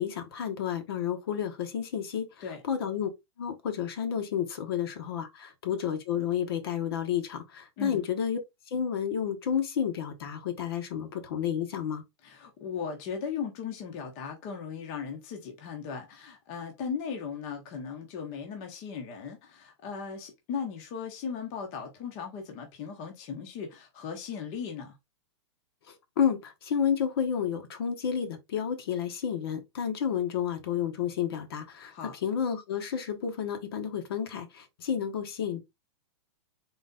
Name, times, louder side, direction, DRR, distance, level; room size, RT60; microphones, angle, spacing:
voice 1, 0.0-2.3 2.6-3.1 3.4-8.4 8.7-12.0 26.2-31.9 32.2-35.6, left 8 dB, 55° left, 1.1 m, -31 dB
voice 2, 12.2-24.9 31.9-32.2, left 6 dB, 25° left, 0.9 m, -37 dB
4.0 x 3.2 x 3.7 m
supercardioid pair, 175°, 15 cm